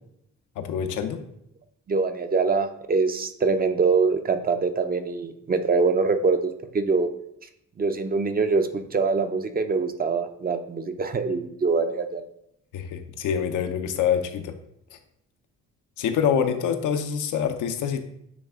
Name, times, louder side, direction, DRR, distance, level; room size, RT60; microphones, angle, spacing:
voice 1, 0.6-1.2 12.7-14.5 16.0-18.0, left 8 dB, 80° left, 7 dB, 0.8 m, -25 dB
voice 2, 1.9-7.1 7.8-12.3, right 4 dB, 30° right, 8 dB, 0.6 m, -24 dB
8.4 x 3.3 x 3.7 m, 0.75 s
cardioid pair, 90°, 30 cm